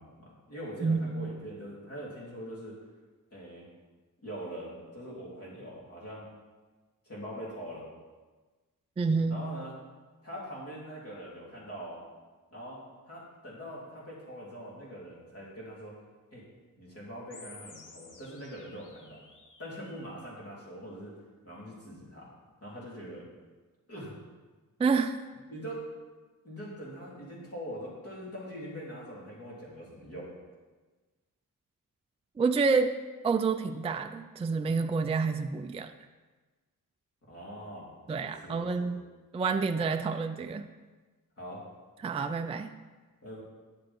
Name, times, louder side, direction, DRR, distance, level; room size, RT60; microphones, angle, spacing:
voice 1, 0.0-2.8 3.3-3.6 4.2-6.3 7.1-7.9 9.3-9.7 10.2-12.0 12.5-12.8 13.1-15.9 16.3-16.4 16.8-19.2 19.6-21.1 21.4-22.3 22.6-23.3 23.9-24.2 25.5-25.8 26.4-30.3 37.3-37.9 38.2-38.9 41.4-41.6 43.2-43.4, equal, 45° left, -5 dB, 3.4 m, -43 dB
voice 2, 0.8-1.2 9.0-9.4 24.8-25.2 32.4-32.9 33.2-35.9 38.1-39.0 39.3-40.6 42.0-42.7, right 4 dB, 20° right, 6 dB, 0.3 m, -28 dB
sound 1, 17.3-20.3, left 3 dB, 65° left, 1.3 m, -53 dB
10.0 x 7.6 x 4.5 m, 1.3 s
wide cardioid pair, 125°, 34 cm